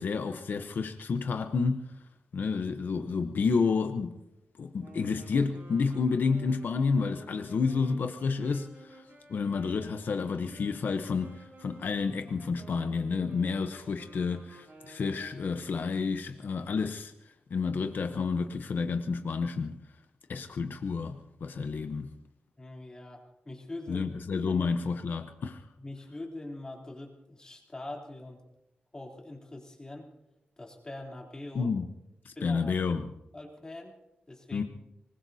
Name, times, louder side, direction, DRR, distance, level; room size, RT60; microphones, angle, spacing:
voice 1, 0.0-1.9 2.3-4.2 4.6-9.0 9.3-17.1 17.5-19.8 20.3-22.1 23.9-25.6 31.5-31.8 32.2-33.0 34.5-34.6, left 5 dB, 65° left, 0.9 m, -30 dB
sound 1, 4.8-15.8, right 2 dB, 60° right, 4.9 m, -53 dB
voice 2, 22.6-24.0 24.5-24.7 25.8-28.4 28.9-30.1 30.6-31.7 32.3-32.8 33.3-34.0 34.3-34.6, left 2 dB, 20° left, 3.2 m, -43 dB
25.5 x 20.5 x 2.8 m
wide cardioid pair, 135°, 4 cm